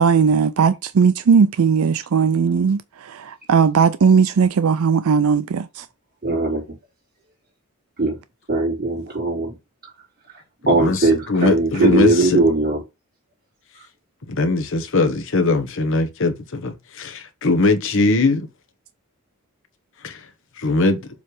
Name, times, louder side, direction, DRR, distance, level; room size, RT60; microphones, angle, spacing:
voice 1, 0.0-5.8, right 6 dB, 75° right, 0.4 m, -17 dB
voice 2, 6.2-6.6 8.0-8.2 8.5-9.5 10.6-12.8, right 2 dB, 40° right, 4.1 m, -19 dB
voice 3, 10.7-12.4 14.3-18.5 20.0-20.2 20.6-21.1, left 3 dB, 60° left, 1.0 m, -20 dB
7.3 x 3.3 x 4.8 m
head